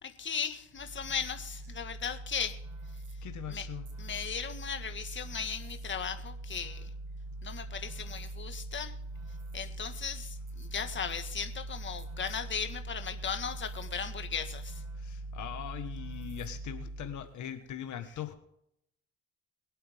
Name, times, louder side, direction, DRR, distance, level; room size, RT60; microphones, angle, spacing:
voice 1, 0.0-2.6 2.9-3.0 3.5-3.7 4.0-6.9 7.4-9.0 9.5-14.8, left 7 dB, 40° left, 7 dB, 1.7 m, -37 dB
sound 1, 0.8-17.3, right 2 dB, 80° right, 2.7 m, -42 dB
voice 2, 3.2-3.8 15.0-18.3, left 10 dB, 75° left, 8 dB, 1.6 m, -41 dB
23.0 x 8.5 x 3.6 m, 0.76 s
cardioid pair, 90°, 30 cm